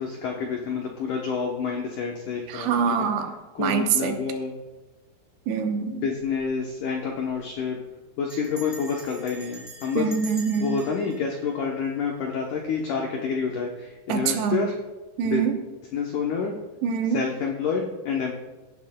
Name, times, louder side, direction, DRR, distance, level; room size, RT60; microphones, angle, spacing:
voice 1, 0.0-2.7 3.0-3.1 3.6-4.5 5.9-7.8 8.2-10.1 10.6-14.8 15.2-15.4 15.9-16.6 17.1-18.3, left 5 dB, 85° left, 0 dB, 1.7 m, -28 dB
voice 2, 2.5-3.3 3.6-4.2 5.5-6.0 9.9-10.8 14.1-14.7 15.2-15.5 16.8-17.2, right 7 dB, 80° right, 5 dB, 3.0 m, -24 dB
Bell, 6.2-6.5 6.8-6.9 7.1-7.5 8.3-12.4, right 1 dB, 10° left, 2.2 m, -45 dB
17.0 x 10.0 x 2.2 m, 1.1 s
omnidirectional pair, 5.0 m